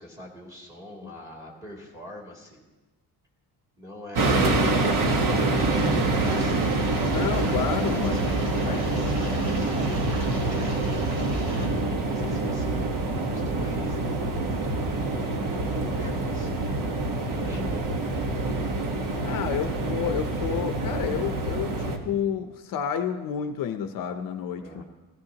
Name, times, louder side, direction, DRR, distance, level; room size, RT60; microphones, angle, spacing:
voice 1, 0.0-2.6 3.8-6.7 7.7-12.9 13.3-16.8 17.3-18.2 24.6-24.8, left 1 dB, 10° right, -2 dB, 2.7 m, -43 dB
sound 1, 4.2-22.0, right 2 dB, 55° right, 1.3 m, -26 dB
sound 2, 5.6-11.7, right 1 dB, 80° right, 3.7 m, -36 dB
voice 2, 7.1-8.2 8.6-8.9 19.2-24.8, left 8 dB, 60° left, 7 dB, 0.7 m, -30 dB
16.5 x 15.0 x 2.9 m, 1.1 s
cardioid pair, 175°, 38 cm